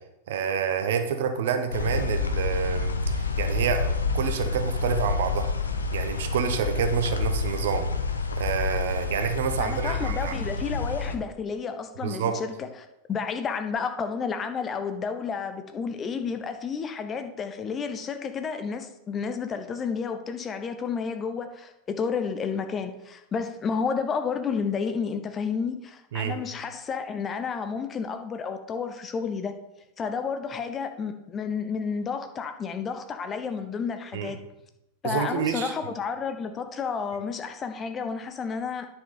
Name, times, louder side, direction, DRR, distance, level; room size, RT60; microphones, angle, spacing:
voice 1, 0.3-5.5 5.9-7.9 8.4-10.3 12.0-12.4 26.1-26.4 34.1-34.3 35.0-35.7, right 7 dB, 55° right, 7 dB, 1.0 m, -28 dB
sound 1, 1.7-11.2, left 4 dB, 75° left, 0.8 m, -28 dB
voice 2, 9.6-12.7 13.1-29.5 30.0-34.4 35.0-38.9, left 6 dB, 25° left, 8 dB, 0.8 m, -31 dB
10.0 x 5.8 x 4.2 m, 0.86 s
figure-of-eight pair, 90°, 0 cm